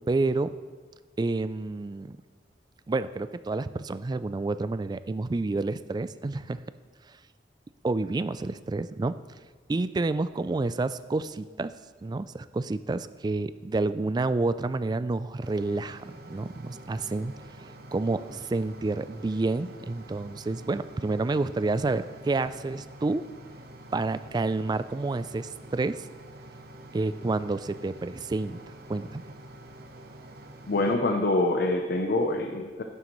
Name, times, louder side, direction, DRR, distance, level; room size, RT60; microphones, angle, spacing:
voice 1, 0.1-0.5 1.2-2.2 2.9-6.6 7.8-9.1 9.7-11.7 12.0-23.2 23.9-26.0 26.9-28.6 28.9-29.2, right 3 dB, 25° right, 14 dB, 0.3 m, -29 dB
sound 1, 15.4-31.0, right 1 dB, 60° right, 0.9 m, -47 dB
voice 2, 30.7-32.8, left 2 dB, 60° left, 4 dB, 0.7 m, -25 dB
11.5 x 11.0 x 3.1 m, 1.4 s
head